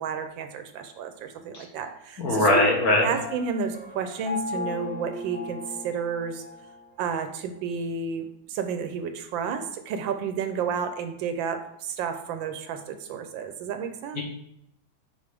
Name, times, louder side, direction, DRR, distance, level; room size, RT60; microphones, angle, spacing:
voice 1, 0.0-2.7 3.0-6.4 7.0-14.2, right 6 dB, 80° right, 8 dB, 1.3 m, -31 dB
voice 2, 2.2-3.1 14.2-14.3, left 2 dB, 55° left, -1 dB, 1.6 m, -20 dB
Piano, 3.0-6.8, left 2 dB, 25° left, 1.9 m, -37 dB
6.6 x 4.9 x 3.5 m, 0.79 s
omnidirectional pair, 2.2 m